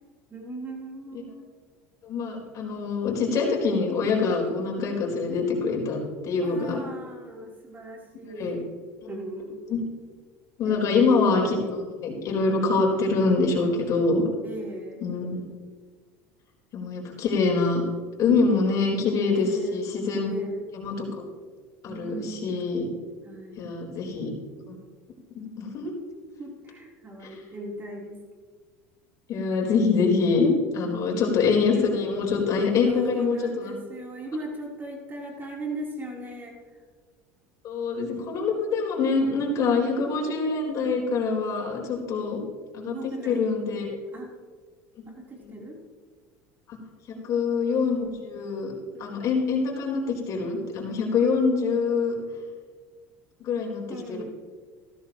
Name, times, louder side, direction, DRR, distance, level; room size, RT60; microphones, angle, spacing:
voice 1, 0.3-1.5 6.3-8.6 9.1-9.6 10.6-11.0 14.4-15.0 19.3-19.8 20.2-20.7 21.9-22.7 23.2-23.7 26.4-28.2 30.8-31.4 32.8-36.6 39.5-40.1 42.9-43.5 44.1-44.3 45.1-45.8 47.1-47.5 48.9-49.1 53.9-54.2, right 1 dB, 25° right, -2 dB, 3.8 m, -38 dB
voice 2, 2.0-6.8 8.4-8.6 9.7-9.8 10.6-14.2 15.0-15.4 16.7-17.8 18.2-20.3 20.7-21.1 21.8-22.9 23.6-24.3 24.7-24.8 25.3-25.9 27.2-27.4 29.3-33.7 37.6-42.4 42.7-44.0 45.4-45.5 46.7-46.8 47.2-48.7 49.0-52.1 53.4-53.8 54.1-54.2, left 4 dB, 50° left, -1 dB, 4.4 m, -25 dB
15.5 x 13.5 x 3.1 m, 1.5 s
supercardioid pair, 110°, 7 cm